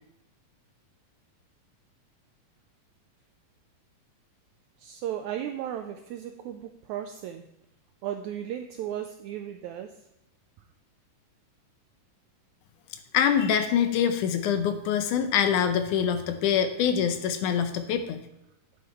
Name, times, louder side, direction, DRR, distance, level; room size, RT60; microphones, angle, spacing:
voice 1, 4.8-7.5 8.0-10.0, right 10 dB, 85° right, 7 dB, 1.6 m, -35 dB
voice 2, 13.1-18.2, left 8 dB, 75° left, 8 dB, 2.1 m, -25 dB
11.0 x 7.9 x 3.1 m, 0.84 s
omnidirectional pair, 3.8 m